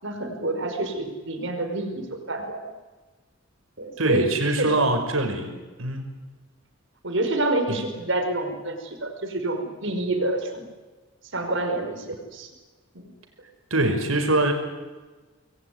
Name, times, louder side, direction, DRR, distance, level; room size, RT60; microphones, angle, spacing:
voice 1, 0.0-2.7 3.8-4.3 4.6-4.8 5.5-5.6 7.0-10.7 11.3-12.5 12.9-13.1, right 2 dB, 65° right, 5 dB, 5.4 m, -28 dB
voice 2, 4.0-5.5 5.8-6.1 7.7-7.8 13.7-14.5, right 2 dB, 85° right, 5 dB, 5.6 m, -23 dB
27.0 x 21.5 x 9.7 m, 1.3 s
head